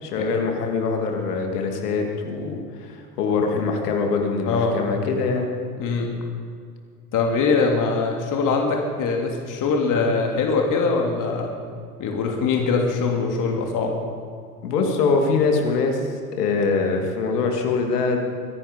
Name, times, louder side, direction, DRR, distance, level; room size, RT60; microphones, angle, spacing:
voice 1, 0.0-5.5 14.6-18.2, left 4 dB, 75° left, 3 dB, 2.8 m, -23 dB
voice 2, 4.4-4.8 5.8-6.1 7.1-11.5 12.0-13.9, left 4 dB, 40° left, 1 dB, 2.9 m, -22 dB
23.5 x 10.5 x 5.3 m, 2.2 s
hypercardioid pair, 90°, 47 cm